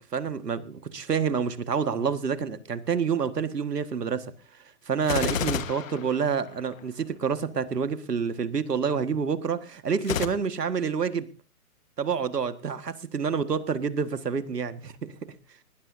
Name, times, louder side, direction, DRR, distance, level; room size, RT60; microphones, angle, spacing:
voice 1, 0.1-4.3 4.8-11.3 12.0-15.3, right 6 dB, 85° right, 11 dB, 1.8 m, -28 dB
Gunshot gunfire, 5.0-6.8 10.0-10.3, left 8 dB, 55° left, 1.5 m, -30 dB
20.5 x 19.5 x 2.7 m, 0.36 s
hypercardioid pair, 140°, 46 cm